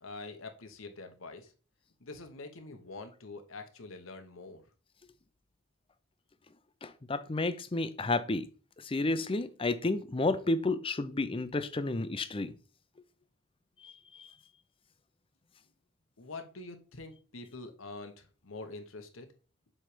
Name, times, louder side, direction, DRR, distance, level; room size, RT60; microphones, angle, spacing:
voice 1, 0.0-1.5 2.0-4.6 16.2-19.3, left 3 dB, 90° left, 6 dB, 1.1 m, -45 dB
voice 2, 6.8-8.5 8.9-12.5, left 2 dB, 25° left, 11 dB, 0.6 m, -31 dB
7.4 x 3.3 x 5.0 m, 0.37 s
head